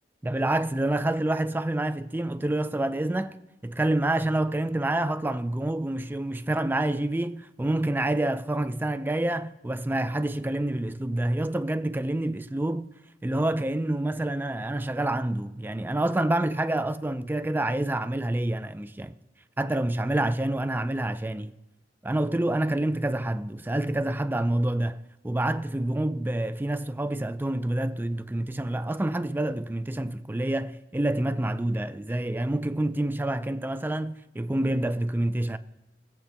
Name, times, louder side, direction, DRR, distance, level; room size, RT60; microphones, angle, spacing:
voice 1, 0.2-3.4 3.6-12.9 13.2-19.2 19.6-21.5 22.0-35.6, right 1 dB, 10° right, 0.4 m, -27 dB
24.5 x 8.2 x 2.2 m
head